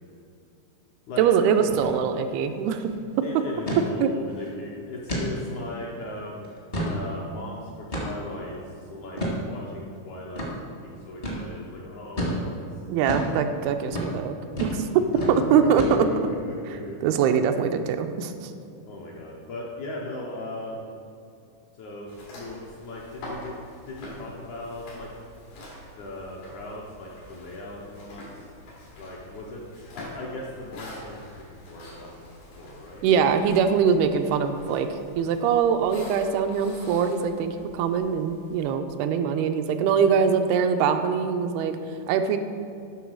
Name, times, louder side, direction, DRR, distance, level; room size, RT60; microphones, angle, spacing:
voice 1, 1.2-2.9 4.0-4.1 12.9-14.4 14.6-14.9 15.5-15.8 17.0-18.5 33.0-34.9 35.2-41.8 42.1-42.4, right 7 dB, 90° right, 7 dB, 2.5 m, -23 dB
sound 1, 1.7-1.9 2.2-2.3 2.7-3.0 3.7-3.9 4.3-4.5 5.1-5.3 5.8-5.9 6.4-7.0 7.9-8.3 9.2-9.4 10.4-10.5 11.2-11.4 12.2-12.4 13.1-13.3 13.9-14.1 14.6-14.8 15.1-15.4 15.8-16.2, equal, 40° left, 0.8 m, -29 dB
voice 2, 3.2-6.5 6.8-9.2 9.4-12.9 13.2-13.3 15.1-15.4 15.9-17.0 18.9-20.9 21.8-22.1 22.3-23.6 23.9-25.1 26.0-28.2 29.0-29.7 29.9-31.2 31.5-32.2 32.6-33.1, left 2 dB, 75° left, -3 dB, 1.8 m, -38 dB
sound 2, 22.1-38.7, left 1 dB, 90° left, 4.3 m, -45 dB
11.5 x 3.9 x 6.3 m, 2.4 s
omnidirectional pair, 4.4 m